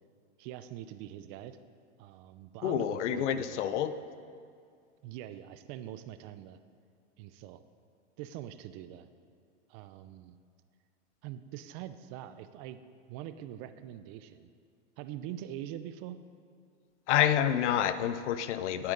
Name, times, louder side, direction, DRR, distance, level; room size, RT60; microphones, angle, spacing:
voice 1, 0.4-1.6 2.0-3.8 5.0-6.6 7.2-7.6 8.2-9.1 9.7-10.4 11.2-12.8 13.1-14.5 15.0-16.2, right 11 dB, 40° right, 12 dB, 0.6 m, -43 dB
voice 2, 2.6-3.9 17.1-18.9, left 10 dB, 80° left, 12 dB, 0.8 m, -28 dB
18.0 x 8.6 x 3.9 m, 2.3 s
supercardioid pair, 140°, 35 cm